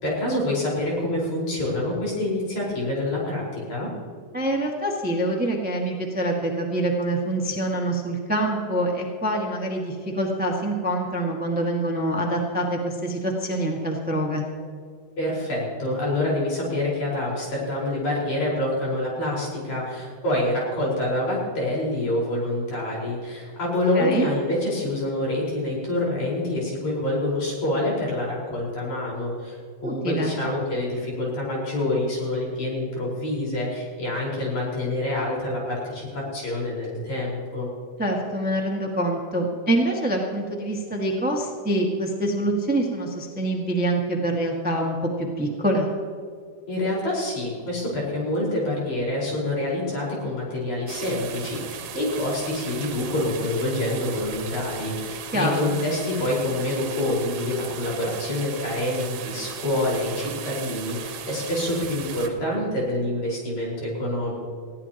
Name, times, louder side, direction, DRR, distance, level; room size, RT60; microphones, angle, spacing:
voice 1, 0.0-3.9 15.2-37.7 46.7-64.4, left 1 dB, 65° left, -5 dB, 6.3 m, -26 dB
voice 2, 4.3-14.5 23.9-24.3 29.8-30.3 38.0-45.9 55.3-55.8, right 1 dB, 5° right, 0 dB, 1.0 m, -25 dB
sound 1, 50.9-62.3, right 8 dB, 75° right, 2.4 m, -37 dB
20.5 x 16.0 x 3.0 m, 2.1 s
omnidirectional pair, 3.5 m